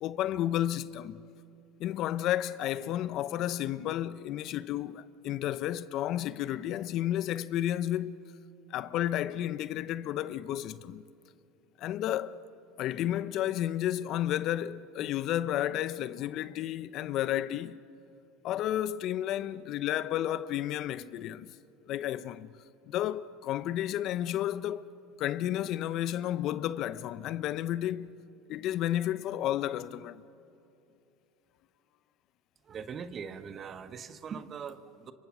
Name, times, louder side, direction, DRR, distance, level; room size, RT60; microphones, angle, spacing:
voice 1, 0.0-1.2 1.8-8.2 8.7-11.0 11.8-12.4 12.8-17.8 18.4-21.5 21.9-22.5 22.9-24.9 25.2-28.1 28.5-30.2, left 12 dB, 55° left, 0.7 m, -32 dB
voice 2, 32.6-35.1, right 6 dB, 35° right, 1.4 m, -41 dB
29.5 x 25.5 x 6.2 m
hypercardioid pair, 90°, 0 cm